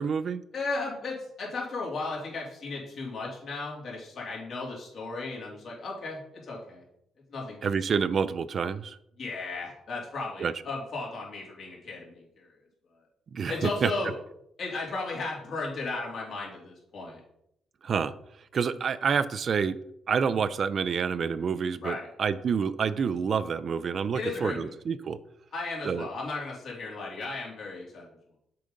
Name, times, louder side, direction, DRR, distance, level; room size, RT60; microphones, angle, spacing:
voice 1, 0.0-0.4 7.6-9.0 10.4-10.5 13.3-13.9 17.8-18.1 18.5-19.8 20.1-25.2 25.8-26.1, right 6 dB, 50° right, 15 dB, 0.4 m, -28 dB
voice 2, 0.5-6.8 7.3-7.6 9.2-12.5 13.5-14.1 14.6-17.2 21.8-22.1 24.1-24.7 25.5-28.1, left 3 dB, 60° left, -3 dB, 2.9 m, -35 dB
6.8 x 3.9 x 5.1 m, 0.74 s
cardioid pair, 90°, 0 cm